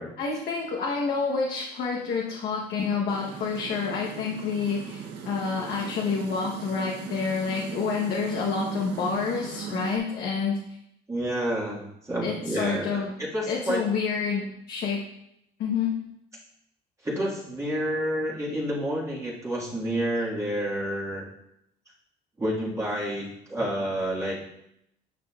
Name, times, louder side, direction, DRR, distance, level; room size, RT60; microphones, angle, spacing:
voice 1, 0.2-10.6 12.2-13.1 13.5-15.0 15.6-16.0, left 5 dB, 70° left, -2 dB, 1.0 m, -28 dB
sound 1, 3.1-10.0, right 7 dB, 90° right, 0.8 m, -38 dB
voice 2, 11.1-13.8 17.0-21.3 22.4-24.4, equal, 20° right, -6 dB, 1.7 m, -29 dB
9.8 x 5.2 x 2.4 m, 0.78 s
cardioid pair, 110°, 17 cm